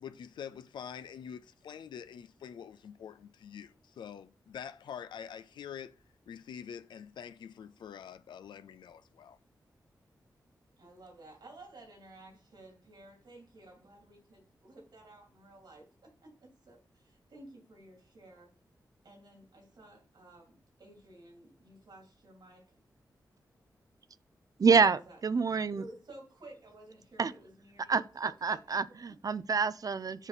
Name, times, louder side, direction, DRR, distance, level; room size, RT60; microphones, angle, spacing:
voice 1, 0.0-5.9 6.3-9.4, left 8 dB, 85° left, 0.4 m, -45 dB
voice 2, 10.8-18.5 19.0-22.6 24.7-25.2 25.7-28.8 29.0-29.1, right 2 dB, 80° right, 2.9 m, -54 dB
voice 3, 24.6-25.8 27.2-27.3 27.9-30.3, right 5 dB, 55° right, 0.5 m, -27 dB
7.2 x 4.9 x 4.1 m
cardioid pair, 45°, 8 cm